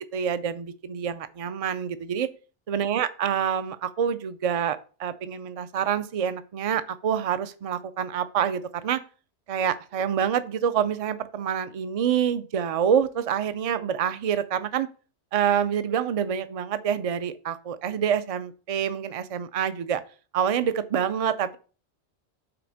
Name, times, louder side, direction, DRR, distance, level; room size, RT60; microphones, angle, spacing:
voice 1, 0.1-2.3 2.7-9.0 9.5-14.9 15.3-20.0 20.3-21.6, right 8 dB, 45° right, 13 dB, 0.4 m, -27 dB
6.0 x 4.3 x 6.3 m, 0.37 s
omnidirectional pair, 1.2 m